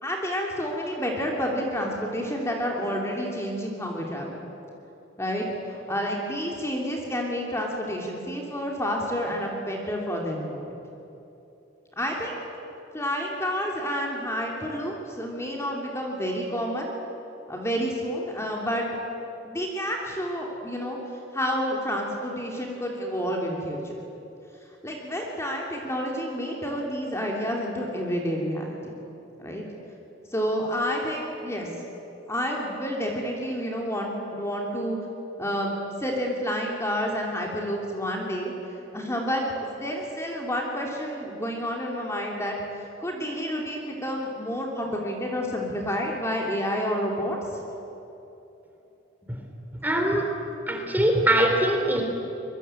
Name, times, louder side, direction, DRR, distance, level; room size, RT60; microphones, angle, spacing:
voice 1, 0.0-4.4 5.2-10.8 12.0-12.4 12.9-16.9 17.5-18.9 19.4-21.0 21.3-24.0 24.8-28.9 29.4-29.6 30.3-31.7 32.3-35.0 35.4-35.7 36.0-38.5 38.9-47.6, equal, 15° left, -1 dB, 2.9 m, -29 dB
voice 2, 49.8-50.3 50.7-52.0, right 1 dB, 10° right, 2 dB, 3.5 m, -22 dB
24.5 x 22.5 x 9.0 m, 3.0 s
head